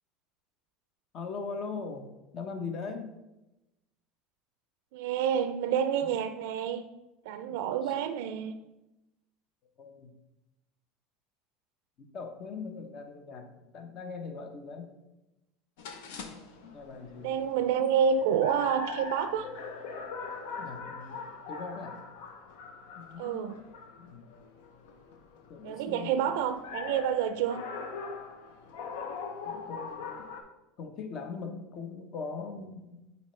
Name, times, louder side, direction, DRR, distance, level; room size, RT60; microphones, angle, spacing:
voice 1, 1.1-2.1 2.3-3.2 6.0-6.1 7.8-7.9 9.8-10.1 12.1-14.9 16.6-17.3 20.6-22.0 23.0-23.4 24.0-24.3 25.5-26.4 29.4-30.3 30.8-33.0, left 4 dB, 40° left, 6 dB, 0.8 m, -40 dB
voice 2, 4.9-6.8 7.3-8.6 17.2-19.5 23.2-23.6 25.6-27.6, right 8 dB, 75° right, 9 dB, 0.4 m, -28 dB
sound 1, 15.8-30.4, left 4 dB, 85° left, 0.8 m, -42 dB
8.1 x 4.2 x 3.2 m, 0.98 s
supercardioid pair, 140°, 0 cm